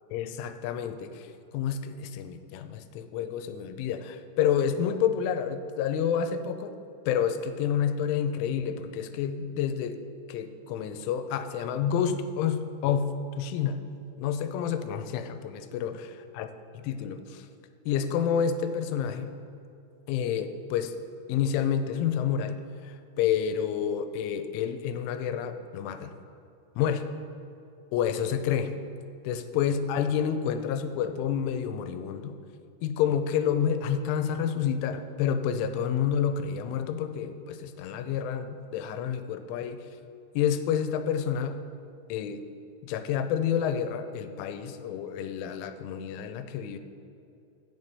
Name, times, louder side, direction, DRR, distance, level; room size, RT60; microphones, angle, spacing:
voice 1, 0.1-1.3 1.5-6.7 7.1-10.0 10.3-13.8 14.2-16.5 16.8-17.5 17.9-19.4 20.1-20.9 21.3-26.1 26.8-27.0 27.9-28.7 29.2-32.4 32.8-39.8 40.3-41.6 42.1-42.4 42.8-46.8, left 8 dB, 85° left, 9 dB, 3.0 m, -29 dB
8.1 x 7.2 x 5.3 m, 2.7 s
omnidirectional pair, 5.6 m